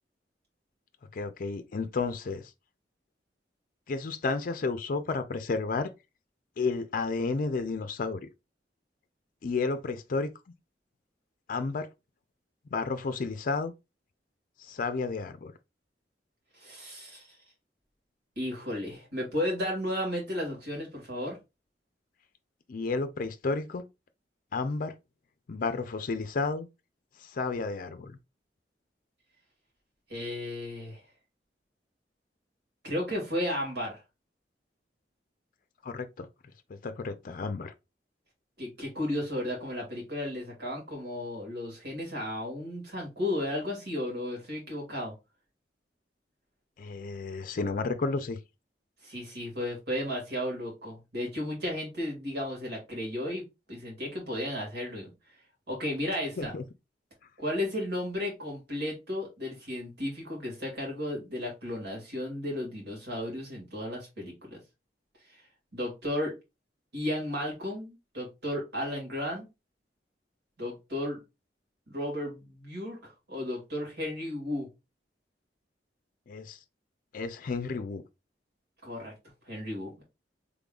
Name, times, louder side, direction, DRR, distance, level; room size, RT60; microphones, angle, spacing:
voice 1, 1.1-2.4 3.9-5.9 6.6-8.3 9.4-10.3 11.5-11.9 12.7-13.7 14.6-15.5 22.7-23.8 24.5-24.9 25.5-26.7 27.2-28.2 35.8-36.3 36.7-37.7 46.8-48.4 56.4-56.6 76.3-76.6 77.1-78.0, left 4 dB, 50° left, 0.4 m, -32 dB
voice 2, 16.5-17.3 18.4-21.4 30.1-31.0 32.8-34.0 38.6-45.1 49.0-55.1 55.7-56.5 57.4-64.6 65.7-66.3 66.9-69.5 70.6-71.2 71.9-74.7 78.8-79.1 79.5-79.9, left 1 dB, 65° right, 2.1 m, -34 dB
3.8 x 3.5 x 2.3 m
head